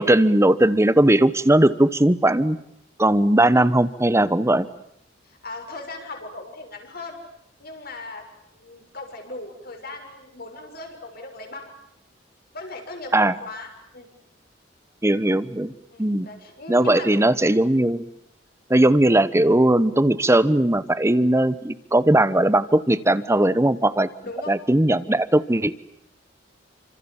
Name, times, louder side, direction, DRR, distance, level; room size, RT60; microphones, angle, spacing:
voice 1, 0.0-2.6 3.0-4.7 13.1-13.3 15.0-15.7 16.0-16.3 16.7-18.0 18.7-24.1 24.5-25.8, right 1 dB, 15° right, 15 dB, 1.1 m, -18 dB
voice 2, 5.2-7.2 7.6-8.3 8.5-11.7 12.5-14.1 15.9-17.2 24.2-24.6, left 2 dB, 55° left, 4 dB, 6.7 m, -38 dB
30.0 x 26.5 x 7.3 m, 0.73 s
head